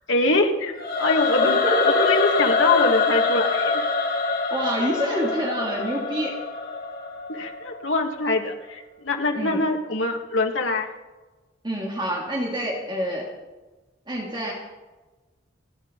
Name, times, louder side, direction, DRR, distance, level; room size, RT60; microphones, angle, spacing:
voice 1, 0.1-3.8 7.3-10.9, left 2 dB, 75° left, 2 dB, 2.0 m, -24 dB
Singing / Musical instrument, 0.8-7.9, left 4 dB, 50° left, 2.4 m, -24 dB
voice 2, 1.4-2.1 4.5-6.4 9.3-9.6 11.6-13.3 14.1-14.5, right 1 dB, 25° right, -3 dB, 2.7 m, -27 dB
30.0 x 10.0 x 4.1 m, 1.2 s
head